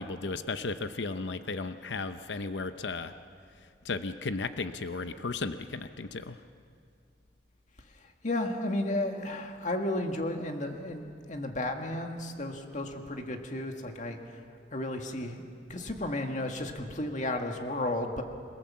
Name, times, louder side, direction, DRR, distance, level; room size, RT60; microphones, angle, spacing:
voice 1, 0.0-3.1 3.8-6.4, left 3 dB, 70° left, 10 dB, 0.8 m, -35 dB
voice 2, 8.2-14.2 14.7-15.4 15.7-18.2, left 1 dB, 45° left, 4 dB, 1.9 m, -33 dB
27.5 x 18.0 x 7.4 m, 2.3 s
head